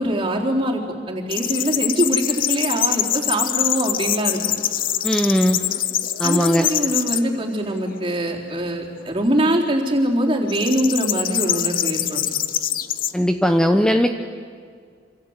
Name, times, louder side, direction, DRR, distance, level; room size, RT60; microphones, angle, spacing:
voice 1, 0.0-4.4 6.2-12.2, right 1 dB, 30° right, -1 dB, 4.0 m, -23 dB
sound 1, 1.3-7.2 7.8-8.3 10.5-13.1, left 11 dB, 50° left, 0.9 m, -24 dB
voice 2, 5.0-5.6 6.2-6.7 13.1-14.1, equal, 5° left, 5 dB, 0.9 m, -18 dB
27.5 x 26.5 x 8.2 m, 2.1 s
head